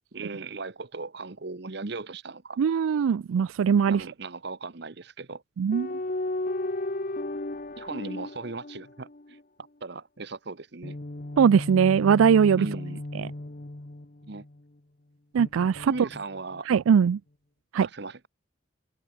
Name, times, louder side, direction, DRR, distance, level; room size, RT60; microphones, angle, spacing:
voice 1, 0.1-2.6 3.9-5.4 7.8-9.4 9.8-11.0 12.6-13.0 14.3-14.4 15.9-16.7 17.8-18.3, right 3 dB, 55° right, 1.0 m, -37 dB
voice 2, 2.6-4.0 5.6-5.9 11.4-12.7 13.1-13.3 15.3-15.9 16.7-17.2 17.7-17.9, right 7 dB, 90° right, 0.4 m, -21 dB
sound 1, 5.7-9.4 10.8-14.6 15.4-16.6, left 2 dB, 40° left, 1.1 m, -35 dB
open air
head